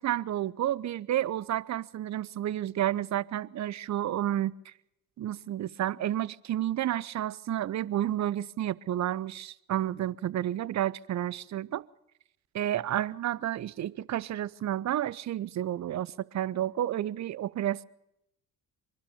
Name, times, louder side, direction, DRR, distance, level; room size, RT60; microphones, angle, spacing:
voice 1, 0.0-4.5 5.2-11.8 12.5-17.8, right 12 dB, 40° right, 0.8 m, -31 dB
25.0 x 12.5 x 8.6 m
figure-of-eight pair, 45°, 42 cm